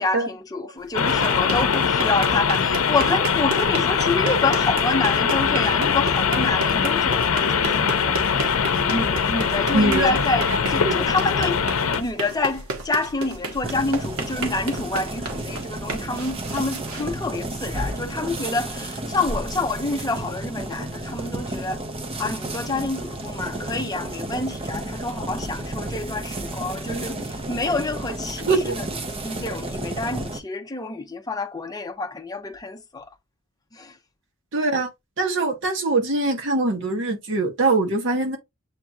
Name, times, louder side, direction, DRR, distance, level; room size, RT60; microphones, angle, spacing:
voice 1, 0.0-8.2 8.9-11.6 12.0-21.8 22.2-28.8 29.2-33.1 33.7-33.9, left 3 dB, 15° left, 0.6 m, -27 dB
sound 1, 0.8-17.8, right 2 dB, 85° right, 1.2 m, -33 dB
sound 2, 0.9-12.0, left 6 dB, 85° left, 0.6 m, -22 dB
voice 2, 9.7-10.1 10.5-10.6 10.8-11.1 28.5-28.7 34.5-34.9 35.2-38.4, right 2 dB, 60° right, 1.3 m, -22 dB
sound 3, 13.6-30.4, right 1 dB, 25° right, 0.6 m, -32 dB
7.9 x 2.8 x 2.4 m
head